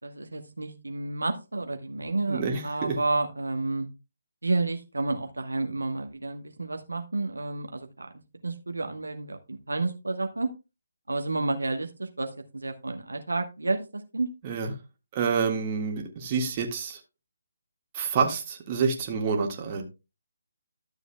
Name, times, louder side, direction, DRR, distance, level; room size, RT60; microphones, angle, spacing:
voice 1, 0.0-3.9 4.4-8.1 8.4-10.5 11.1-14.3, right 3 dB, 85° right, 1.1 m, -30 dB
voice 2, 2.3-3.0 14.4-14.7 15.1-17.0 17.9-19.8, right 5 dB, 30° right, 1.8 m, -28 dB
12.5 x 7.0 x 2.3 m
figure-of-eight pair, 150°, 0 cm